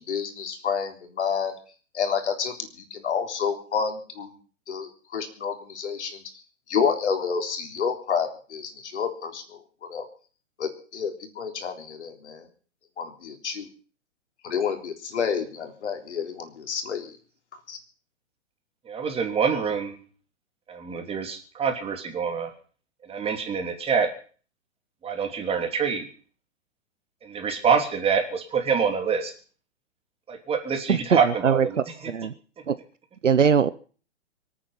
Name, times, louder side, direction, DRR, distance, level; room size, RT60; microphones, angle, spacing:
voice 1, 0.0-1.5 1.9-4.3 4.7-6.2 6.7-9.4 9.9-10.1 10.6-12.5 13.0-13.7 14.4-17.1 17.7-17.8, left 6 dB, 65° left, 5 dB, 3.7 m, -29 dB
voice 2, 18.8-20.0 20.7-22.5 23.0-24.1 25.0-26.1 27.2-29.3 30.3-32.1, right 6 dB, 15° right, 4 dB, 3.2 m, -26 dB
voice 3, 30.9-31.7 32.1-32.3 32.7-32.8 33.2-33.7, right 7 dB, 85° right, 15 dB, 1.0 m, -21 dB
25.0 x 9.0 x 5.8 m, 0.41 s
hypercardioid pair, 120°, 36 cm